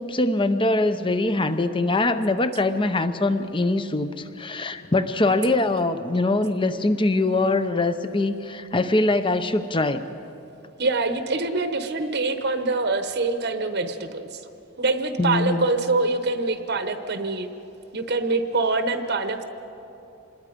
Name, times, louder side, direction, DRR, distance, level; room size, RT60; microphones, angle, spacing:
voice 1, 0.0-10.0 15.2-15.7, left 2 dB, 25° left, 10 dB, 0.8 m, -23 dB
voice 2, 10.8-14.4 14.8-17.5 17.9-19.4, right 3 dB, 50° right, 8 dB, 1.0 m, -25 dB
26.5 x 21.0 x 5.2 m, 2.9 s
head